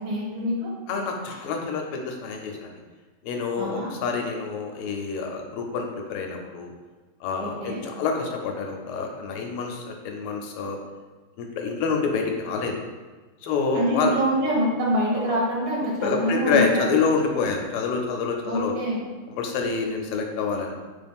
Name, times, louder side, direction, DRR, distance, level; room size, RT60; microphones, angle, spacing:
voice 1, 0.0-0.7 3.6-3.9 7.4-7.8 13.7-16.8 18.4-19.0, equal, 75° right, -3 dB, 1.7 m, -25 dB
voice 2, 0.9-2.8 3.2-6.7 7.2-10.8 11.4-12.7 13.4-14.1 15.1-15.4 16.0-18.7 19.3-20.8, left 5 dB, 80° left, 2 dB, 1.4 m, -27 dB
4.2 x 2.4 x 3.4 m, 1.3 s
omnidirectional pair, 2.4 m